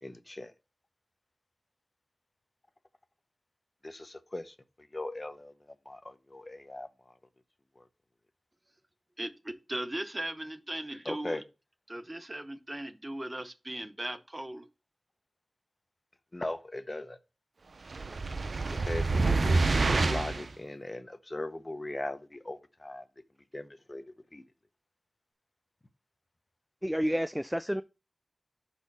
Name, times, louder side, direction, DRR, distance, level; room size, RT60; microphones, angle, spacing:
voice 1, 0.0-0.5 3.8-7.2 7.8-7.9 11.0-11.4 16.3-17.2 18.7-23.0 23.5-24.0 24.3-24.4, left 1 dB, 35° left, 0.8 m, -39 dB
voice 2, 9.2-11.4 11.9-14.7, right 1 dB, 30° right, 0.8 m, -38 dB
sound 1, 17.9-20.5, right 3 dB, 75° right, 0.5 m, -27 dB
voice 3, 26.8-27.8, equal, 5° right, 0.3 m, -29 dB
5.9 x 4.3 x 5.4 m
wide cardioid pair, 50°, 0 cm